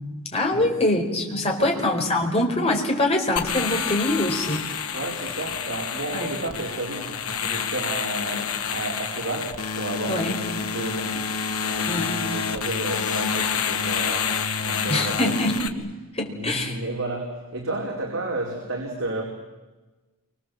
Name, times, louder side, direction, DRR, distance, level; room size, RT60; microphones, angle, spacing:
voice 1, 0.3-4.6 6.2-6.3 10.1-10.4 11.9-12.1 14.9-16.8, left 1 dB, 30° left, 2 dB, 4.7 m, -24 dB
sound 1, 3.4-15.7, left 6 dB, 80° left, 2.2 m, -28 dB
voice 2, 4.9-15.4 16.3-19.2, right 2 dB, 65° right, -1 dB, 4.6 m, -32 dB
29.0 x 25.5 x 7.8 m, 1.2 s
head